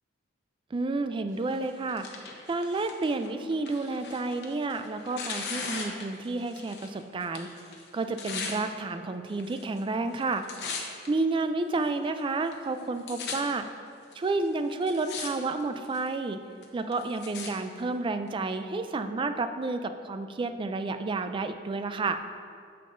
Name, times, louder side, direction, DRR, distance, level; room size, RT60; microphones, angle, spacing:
voice 1, 0.7-2.1 2.5-7.5 7.9-10.4 11.1-13.7 14.1-16.4 16.7-22.2, right 3 dB, 25° right, 9 dB, 0.3 m, -30 dB
Tearing, 1.5-6.9 7.2-8.6 9.3-9.8 10.1-11.1 11.7-11.8 12.5-12.6 12.8-13.4 14.1-14.2 14.7-15.3 15.6-16.1 16.6-17.5 18.3-18.4, left 5 dB, 60° left, 0.9 m, -39 dB
8.8 x 6.6 x 2.6 m, 2.3 s
head